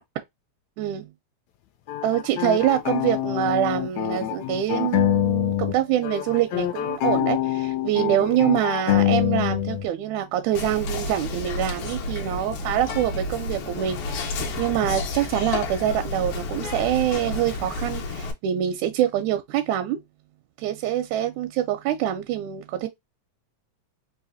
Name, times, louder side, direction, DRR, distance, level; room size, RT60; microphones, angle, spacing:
voice 1, 0.8-1.1 2.0-20.0 20.6-22.9, right 11 dB, 85° right, 1.9 m, -25 dB
sound 1, 1.9-5.8 6.0-9.9, left 13 dB, 80° left, 1.9 m, -25 dB
Whispering, 10.6-18.3, left 3 dB, 65° left, 1.6 m, -31 dB
4.8 x 2.7 x 2.5 m
omnidirectional pair, 3.3 m